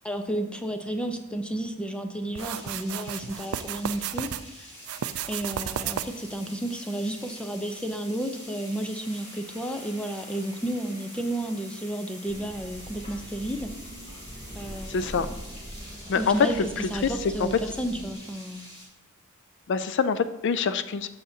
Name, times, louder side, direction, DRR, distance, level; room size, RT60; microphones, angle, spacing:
voice 1, 0.0-4.7 5.3-13.7 14.6-15.3 16.1-16.6 16.9-18.7, right 1 dB, 5° left, 6 dB, 0.6 m, -32 dB
sound 1, 2.4-18.9, equal, 25° left, 2.2 m, -46 dB
sound 2, 2.4-4.4 4.8-6.3, right 10 dB, 75° right, 0.4 m, -33 dB
sound 3, 12.3-18.1, equal, 30° right, 1.9 m, -42 dB
voice 2, 14.9-15.3 16.1-16.3 17.0-17.1 17.4-17.5 19.7-21.1, left 6 dB, 55° left, 12 dB, 0.4 m, -25 dB
13.0 x 6.5 x 2.7 m, 0.96 s
head